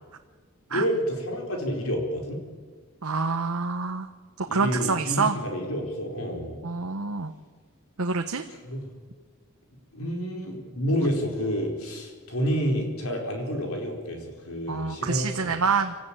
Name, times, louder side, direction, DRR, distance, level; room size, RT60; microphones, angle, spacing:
voice 1, 0.7-2.4 4.4-6.6 8.5-8.9 9.9-15.6, equal, 70° left, 2 dB, 4.5 m, -29 dB
voice 2, 3.0-4.1 4.4-5.4 6.6-7.3 8.0-8.4 14.7-16.0, right 4 dB, 80° right, 5 dB, 1.1 m, -27 dB
26.0 x 14.0 x 9.0 m, 1.5 s
head